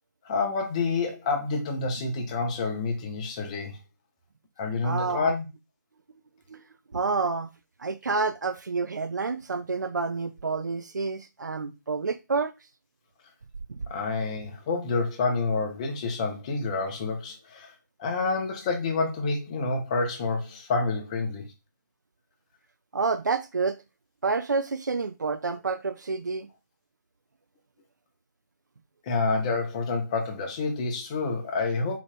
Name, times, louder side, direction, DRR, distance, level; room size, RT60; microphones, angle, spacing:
voice 1, 0.2-3.8 4.6-5.5 13.9-17.7 18.0-21.4 29.1-32.0, left 3 dB, 20° left, 0.7 m, -28 dB
voice 2, 4.8-5.3 6.5-6.6 6.9-7.5 7.8-12.5 22.9-23.8 24.2-26.5, right 4 dB, 70° right, 0.4 m, -28 dB
3.8 x 3.0 x 3.3 m
figure-of-eight pair, 150°, 10 cm